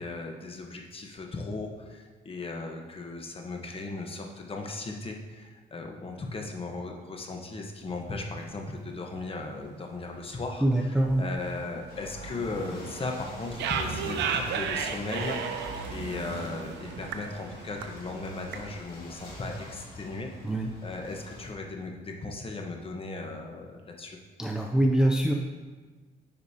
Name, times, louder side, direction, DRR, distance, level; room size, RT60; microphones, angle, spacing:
voice 1, 0.0-20.3 20.8-24.2, left 3 dB, 30° left, 2 dB, 1.1 m, -37 dB
sound 1, 7.9-8.4 8.8-8.9 9.1-9.2 9.5-9.7 10.0-18.8, right 6 dB, 80° right, 0.6 m, -35 dB
voice 2, 10.6-11.2 20.4-20.7 24.4-25.3, right 1 dB, 5° right, 1 dB, 0.5 m, -24 dB
Ocean / Boat Water vehicle, 11.9-21.5, left 2 dB, 60° left, 2.0 m, -47 dB
9.6 x 5.1 x 2.8 m, 1.4 s
cardioid pair, 100°, 18 cm